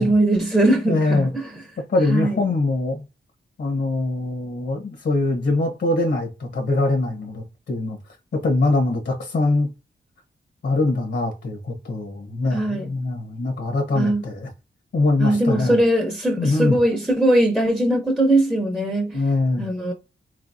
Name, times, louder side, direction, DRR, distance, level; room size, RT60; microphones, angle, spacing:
voice 1, 0.0-1.5 2.1-2.4 12.5-12.9 14.0-14.2 15.2-19.2 19.6-19.9, right 1 dB, ahead, 0.8 m, -20 dB
voice 2, 0.8-1.3 1.9-3.0 3.6-8.0 8.3-9.7 10.6-14.5 14.9-15.8 16.4-16.8 19.1-19.7, left 2 dB, 70° left, 1.3 m, -23 dB
3.9 x 3.2 x 2.7 m
wide cardioid pair, 115°, 19 cm